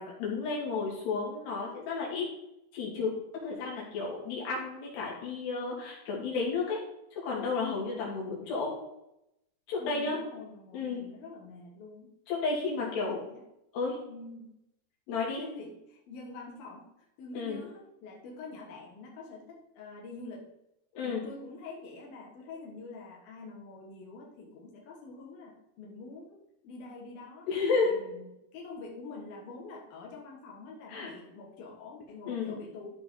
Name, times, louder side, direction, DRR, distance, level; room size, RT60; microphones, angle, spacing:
voice 1, 0.0-2.3 2.7-3.1 3.4-6.8 7.2-8.7 9.7-10.2 10.7-11.0 12.3-13.2 13.7-14.0 15.1-15.4 17.3-17.6 20.9-21.2 27.5-28.0 30.9-31.1 32.3-32.6, left 4 dB, 85° left, -3 dB, 4.7 m, -32 dB
voice 2, 9.8-12.1 12.6-12.7 13.0-13.4 14.0-14.5 15.1-16.8 17.2-20.5 21.0-27.5 27.7-33.0, left 3 dB, 65° left, -1 dB, 3.3 m, -46 dB
13.5 x 4.9 x 3.9 m, 0.83 s
omnidirectional pair, 4.6 m